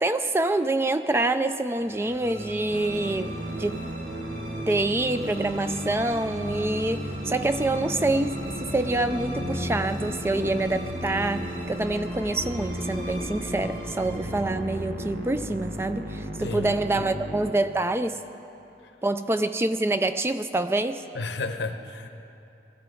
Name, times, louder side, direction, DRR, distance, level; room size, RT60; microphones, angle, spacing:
voice 1, 0.0-3.8 4.6-18.2 19.0-21.1, right 2 dB, 15° right, 10 dB, 0.3 m, -26 dB
sound 1, 1.8-16.2, equal, 85° right, 3.7 m, -36 dB
Musical instrument, 2.7-17.5, right 1 dB, 60° right, 1.0 m, -37 dB
voice 2, 16.4-17.1 21.1-22.1, left 3 dB, 90° left, 7 dB, 0.9 m, -33 dB
19.5 x 14.0 x 3.8 m, 2.8 s
head